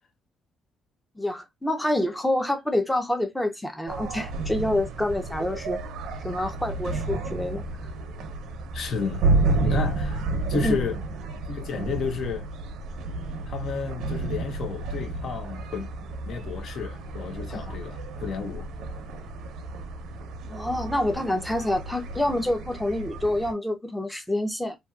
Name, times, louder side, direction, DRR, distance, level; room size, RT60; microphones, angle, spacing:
voice 1, 1.2-5.8 6.2-7.6 10.6-10.8 17.5-17.8 20.5-24.8, left 1 dB, 5° left, 0.5 m, -27 dB
sound 1, 3.9-23.5, right 2 dB, 80° right, 0.6 m, -31 dB
voice 2, 8.7-9.2 9.6-10.2 10.5-11.0 11.5-12.5 13.5-15.9 16.3-18.7, left 6 dB, 55° left, 0.5 m, -32 dB
2.7 x 2.7 x 2.3 m
cardioid pair, 125°, 0 cm